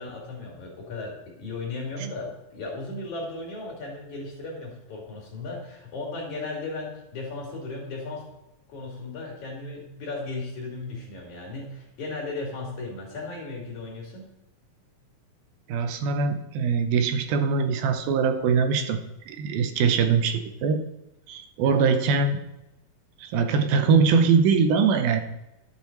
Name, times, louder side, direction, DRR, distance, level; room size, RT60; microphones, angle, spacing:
voice 1, 0.0-8.3 8.7-14.3 21.6-21.8, left 3 dB, 55° left, -2 dB, 3.7 m, -36 dB
voice 2, 15.7-19.0 19.3-20.8 21.3-22.4 23.2-25.2, right 5 dB, 85° right, 7 dB, 2.6 m, -22 dB
11.0 x 7.5 x 4.3 m, 0.91 s
omnidirectional pair, 4.2 m